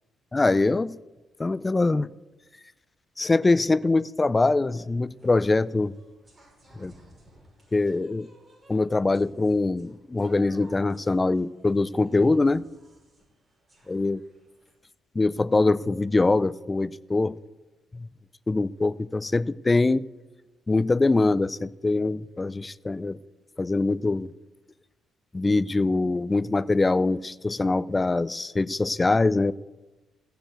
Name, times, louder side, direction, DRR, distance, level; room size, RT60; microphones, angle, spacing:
voice 1, 0.3-1.0 1.4-2.1 3.2-5.9 6.8-6.9 7.7-8.3 8.7-12.6 13.9-14.2 15.1-17.4 17.9-18.1 18.5-20.0 20.7-23.2 23.6-24.3 25.3-29.5, left 3 dB, 20° left, 0.4 m, -23 dB
sound 1, 4.6-14.7, right 1 dB, 25° right, 5.8 m, -56 dB
15.5 x 6.9 x 7.7 m
cardioid pair, 90°, 0 cm